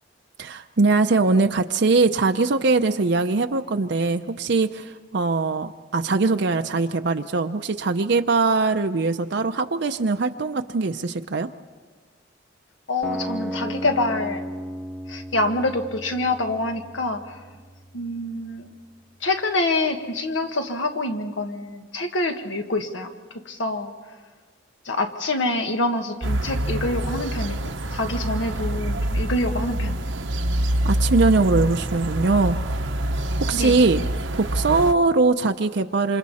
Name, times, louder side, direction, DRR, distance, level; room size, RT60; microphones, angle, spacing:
voice 1, 0.4-11.5 30.8-32.9 33.5-34.0 34.3-36.2, right 3 dB, 60° right, 6 dB, 0.6 m, -21 dB
voice 2, 12.9-14.4 15.1-17.4 17.9-18.7 19.2-23.1 23.5-23.9 24.9-29.9 33.5-33.8, left 2 dB, 80° left, 5 dB, 1.8 m, -26 dB
sound 1, 13.0-19.0, equal, ahead, 0.9 m, -35 dB
sound 2, 26.2-34.9, right 1 dB, 90° right, 1.1 m, -26 dB
28.0 x 27.0 x 4.2 m, 1.4 s
head